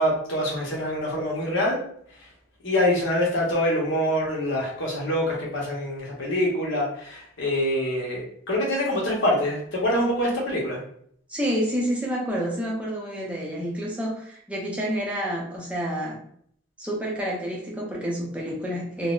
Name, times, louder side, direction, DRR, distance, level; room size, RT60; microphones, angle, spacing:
voice 1, 0.0-1.8 2.2-2.3 2.6-10.8, left 1 dB, 70° left, -3 dB, 1.0 m, -25 dB
voice 2, 11.3-16.2 16.8-19.1, equal, 5° right, -3 dB, 0.6 m, -28 dB
3.8 x 2.0 x 2.4 m, 0.65 s
head